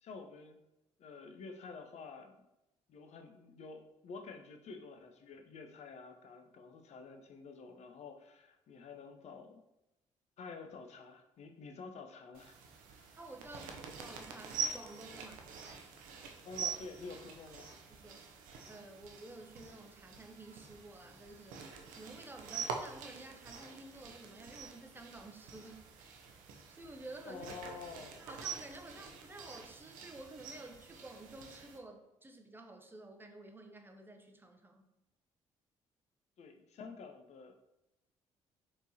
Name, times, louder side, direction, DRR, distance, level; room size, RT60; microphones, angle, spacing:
voice 1, 0.0-0.6 1.0-2.4 2.9-9.6 10.4-12.6 12.9-13.0 16.4-17.7 27.3-28.3 36.4-37.5, left 4 dB, 50° left, 5 dB, 0.6 m, -49 dB
sound 1, 12.3-31.8, right 5 dB, 70° right, 0.5 m, -46 dB
voice 2, 13.2-15.4 17.9-18.3 18.6-25.8 26.7-27.5 28.2-34.9, right 2 dB, 15° right, 4 dB, 0.7 m, -52 dB
4.3 x 3.1 x 2.7 m, 0.92 s
hypercardioid pair, 50°, 14 cm